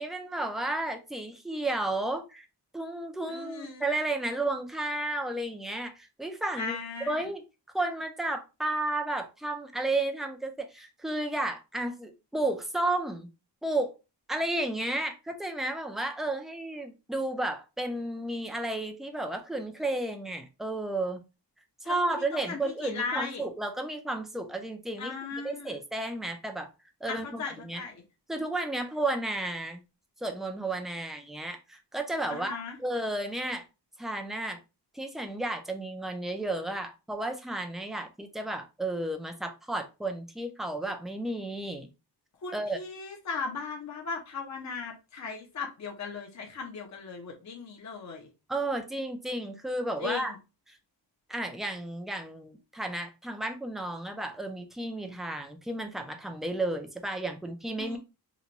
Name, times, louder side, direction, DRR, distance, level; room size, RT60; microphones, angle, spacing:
voice 1, 0.0-2.5 2.7-6.8 7.1-7.4 7.7-13.3 13.6-13.9 14.3-21.2 21.8-26.7 27.0-27.8 28.3-29.8 30.2-33.6 34.0-34.6 34.9-41.9 42.5-42.8 48.5-50.3 51.3-58.0, right 2 dB, ahead, 0.4 m, -32 dB
voice 2, 3.3-3.8 6.5-7.2 21.8-23.5 25.0-25.8 27.1-28.0 32.3-32.8 42.4-48.3 50.0-50.4 57.8-58.0, left 5 dB, 40° left, 0.7 m, -37 dB
2.9 x 2.2 x 3.8 m
wide cardioid pair, 160°, 43 cm